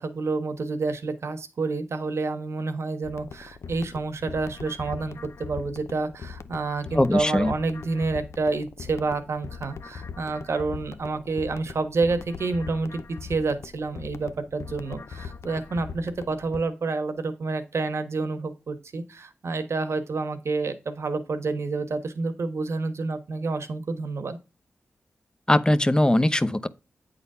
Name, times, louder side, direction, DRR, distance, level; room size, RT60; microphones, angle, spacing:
voice 1, 0.0-24.4, right 3 dB, 70° right, 1.1 m, -29 dB
sound 1, 3.0-16.6, left 6 dB, 75° left, 0.5 m, -41 dB
voice 2, 6.9-7.5 25.5-26.7, left 1 dB, 15° left, 0.6 m, -20 dB
8.5 x 4.0 x 5.4 m
cardioid pair, 50°, 5 cm